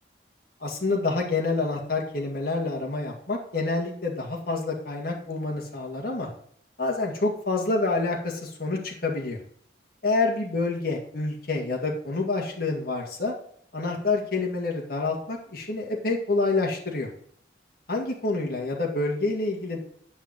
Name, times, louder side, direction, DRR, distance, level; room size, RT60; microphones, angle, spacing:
voice 1, 0.6-6.3 6.8-9.4 10.0-13.3 13.7-17.1 17.9-19.8, left 3 dB, 55° left, -1 dB, 2.0 m, -27 dB
8.8 x 5.5 x 7.7 m, 0.63 s
head